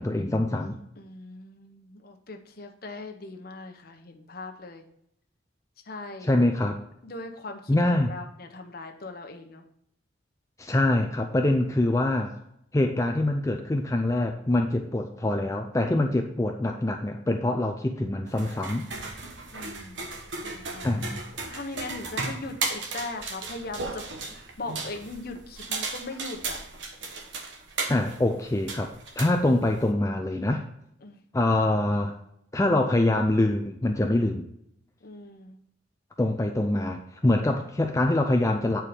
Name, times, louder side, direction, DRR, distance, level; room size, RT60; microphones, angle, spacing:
voice 1, 0.0-0.8 6.3-6.8 7.7-8.1 10.6-12.3 12.7-18.9 20.8-21.2 27.9-30.6 31.3-32.1 32.5-34.5 36.2-38.8, left 1 dB, 15° left, 4 dB, 0.4 m, -24 dB
voice 2, 1.0-4.9 5.9-6.3 7.0-9.6 19.5-20.0 20.4-20.9 21.4-24.0 24.6-26.6 31.0-31.2 35.0-35.6, left 2 dB, 50° left, 4 dB, 1.0 m, -40 dB
sound 1, 18.3-29.9, right 3 dB, 70° right, 1.2 m, -36 dB
8.7 x 4.6 x 4.9 m, 0.75 s
head